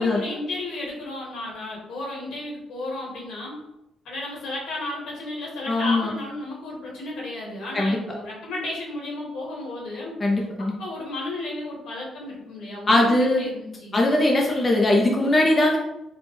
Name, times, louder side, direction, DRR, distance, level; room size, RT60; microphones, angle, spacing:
voice 1, 0.0-3.6 4.0-13.1 13.4-14.0, left 2 dB, 80° left, -3 dB, 1.4 m, -33 dB
voice 2, 5.7-6.1 7.7-8.2 10.2-10.7 12.9-13.4 13.9-15.8, left 1 dB, 20° left, -1 dB, 0.4 m, -20 dB
4.2 x 2.2 x 3.0 m, 0.91 s
cardioid pair, 155°, 0 cm